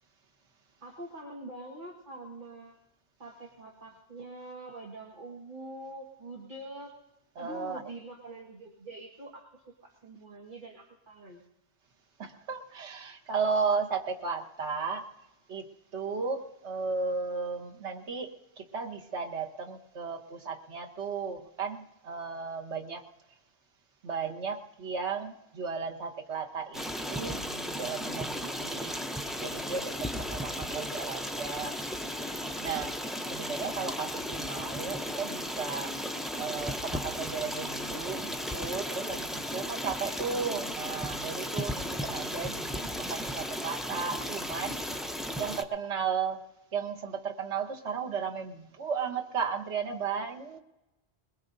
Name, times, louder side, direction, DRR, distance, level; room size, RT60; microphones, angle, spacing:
voice 1, 0.8-2.8 3.2-6.9 7.4-9.5 9.8-11.4, right 2 dB, 45° right, -1 dB, 1.8 m, -44 dB
voice 2, 7.4-7.8 12.2-15.1 15.5-15.7 15.9-23.0 24.0-26.8 27.1-29.0 29.4-31.8 32.6-33.0 33.3-35.9 36.4-44.8 45.4-46.4 46.7-50.6, right 5 dB, 85° right, 2 dB, 1.4 m, -35 dB
Stream, 26.7-45.6, equal, ahead, 0.4 m, -35 dB
21.0 x 20.5 x 2.7 m, 0.94 s
omnidirectional pair, 1.1 m